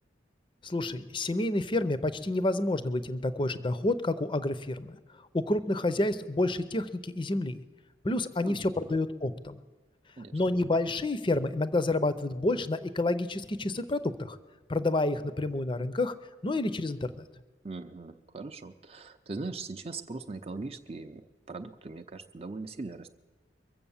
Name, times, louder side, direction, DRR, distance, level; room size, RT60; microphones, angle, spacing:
voice 1, 0.6-5.0 5.3-7.6 8.0-9.6 10.3-14.4 14.7-16.1 16.4-17.2, left 2 dB, 25° left, 13 dB, 0.6 m, -29 dB
voice 2, 8.4-9.0 10.2-10.3 17.6-23.1, right 3 dB, 35° right, 7 dB, 0.5 m, -40 dB
23.0 x 7.7 x 7.1 m, 1.2 s
head